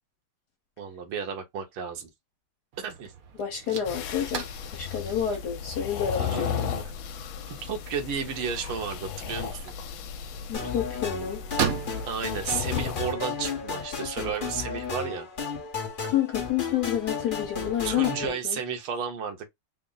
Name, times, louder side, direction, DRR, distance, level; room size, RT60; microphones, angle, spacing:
voice 1, 0.8-2.1 2.8-3.1 6.2-6.8 7.6-9.7 12.1-15.3 17.8-19.5, right 6 dB, 90° right, 1.8 m, -33 dB
sound 1, 2.7-15.1, right 7 dB, 60° right, 0.9 m, -39 dB
voice 2, 3.4-4.5 4.7-6.5 10.5-11.4 16.0-18.6, left 10 dB, 60° left, 1.3 m, -29 dB
sound 2, 3.8-13.1, left 8 dB, 75° left, 1.3 m, -35 dB
sound 3, 10.5-18.3, left 5 dB, 40° left, 0.7 m, -34 dB
4.2 x 2.0 x 3.8 m
omnidirectional pair, 2.3 m